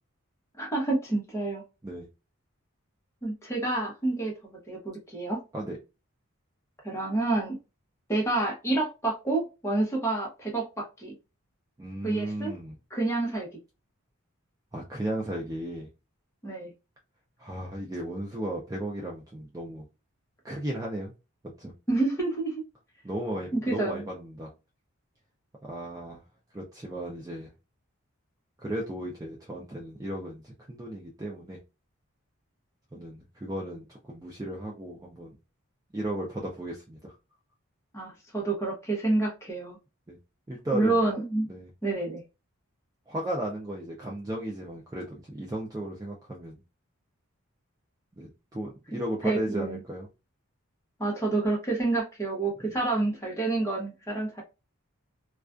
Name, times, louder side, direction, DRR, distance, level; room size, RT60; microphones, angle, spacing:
voice 1, 0.6-1.6 3.2-5.4 6.8-7.6 8.1-11.1 12.0-12.5 12.9-13.5 16.4-16.7 21.9-22.5 23.5-24.1 37.9-39.8 40.7-41.5 41.8-42.2 49.2-49.8 51.0-54.4, right 2 dB, 10° left, -1 dB, 0.7 m, -28 dB
voice 2, 11.8-12.8 14.7-15.9 17.4-19.9 20.4-21.1 21.6-21.7 23.0-24.5 25.6-26.2 26.5-27.5 28.6-31.6 32.9-35.4 35.9-37.1 40.1-40.2 40.5-41.1 41.5-41.7 43.1-46.6 48.1-50.1 52.6-52.8, right 1 dB, 15° right, -2 dB, 0.3 m, -35 dB
2.3 x 2.2 x 2.3 m, 0.28 s
head